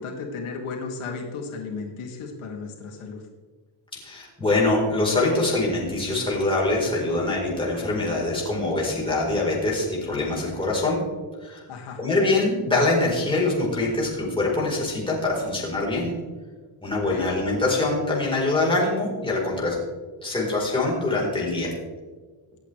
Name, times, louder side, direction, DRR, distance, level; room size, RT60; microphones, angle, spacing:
voice 1, 0.0-3.3 11.7-12.0 16.9-17.3, left 4 dB, 80° left, 1 dB, 2.5 m, -34 dB
voice 2, 4.0-11.0 11.4-11.6 12.0-16.1 16.8-19.8 20.2-21.7, left 2 dB, 10° left, -4 dB, 4.2 m, -24 dB
25.0 x 8.6 x 3.4 m, 1.4 s
cardioid pair, 170°, 49 cm